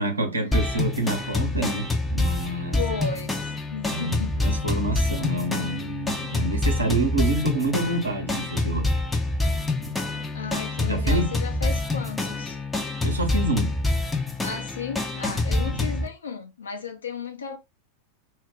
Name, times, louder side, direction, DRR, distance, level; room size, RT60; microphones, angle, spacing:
voice 1, 0.0-2.8 3.9-8.9 9.8-9.9 10.8-11.3 13.0-13.7 15.3-15.4 15.6-15.9, right 1 dB, 75° right, 0.7 m, -27 dB
sound 1, 0.5-16.1, left 2 dB, 10° left, 0.4 m, -26 dB
voice 2, 2.8-4.4 10.3-12.6 14.4-17.6, left 5 dB, 70° left, 0.6 m, -35 dB
2.2 x 2.1 x 3.6 m
figure-of-eight pair, 90°, 0 cm